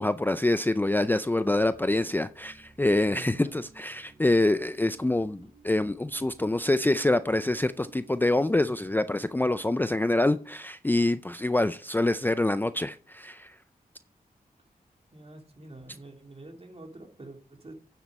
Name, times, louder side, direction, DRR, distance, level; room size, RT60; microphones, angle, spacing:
voice 1, 0.0-13.5, left 2 dB, 10° left, 0.4 m, -26 dB
sound 1, 1.4-9.9, right 4 dB, 10° right, 4.4 m, -57 dB
voice 2, 3.1-3.7 15.1-17.7, right 2 dB, 40° right, 2.7 m, -46 dB
9.7 x 7.3 x 5.3 m
wide cardioid pair, 75°, 15 cm